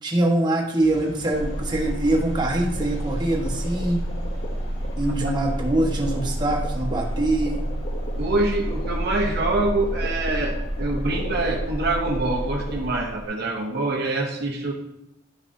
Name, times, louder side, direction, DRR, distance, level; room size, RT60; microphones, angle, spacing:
voice 1, 0.0-4.1 5.0-7.6, right 1 dB, 25° right, -3 dB, 1.4 m, -24 dB
sound 1, 0.8-13.6, equal, 75° left, 1.8 m, -46 dB
sound 2, 1.3-13.3, equal, 35° left, 0.9 m, -29 dB
voice 2, 8.2-14.7, right 2 dB, 55° right, -2 dB, 0.9 m, -25 dB
10.5 x 5.9 x 2.7 m, 0.87 s
head